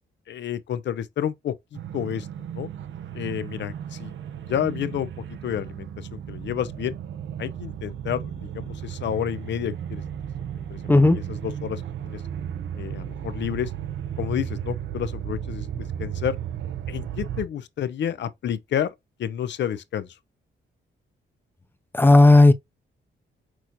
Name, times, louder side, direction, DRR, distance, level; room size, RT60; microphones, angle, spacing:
voice 1, 0.3-2.3 2.5-2.7 3.1-4.1 4.5-7.0 7.4-10.0 10.7-10.8 11.1-12.2 12.8-13.7 14.2-16.4 16.9-18.9 19.2-20.1, left 9 dB, 65° left, 0.6 m, -30 dB
sound 1, 1.7-17.5, right 9 dB, 75° right, 0.6 m, -34 dB
voice 2, 10.9-11.2 21.9-22.5, left 2 dB, 10° left, 0.6 m, -13 dB
6.0 x 2.6 x 2.9 m
cardioid pair, 125°, 20 cm